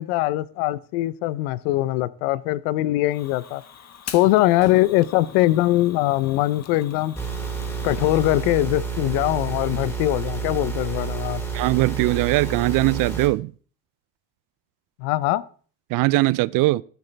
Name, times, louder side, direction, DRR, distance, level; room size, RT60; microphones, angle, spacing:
voice 1, 0.0-3.6 4.1-7.1 7.8-11.4 15.0-15.4, left 16 dB, 80° left, 0.7 m, -22 dB
Fire, 3.1-8.4, left 8 dB, 40° left, 1.4 m, -42 dB
sound 1, 7.2-13.3, right 5 dB, 5° left, 4.0 m, -29 dB
voice 2, 11.5-13.5 15.9-16.8, right 20 dB, 55° right, 0.5 m, -20 dB
14.0 x 9.0 x 3.3 m
supercardioid pair, 95°, 40 cm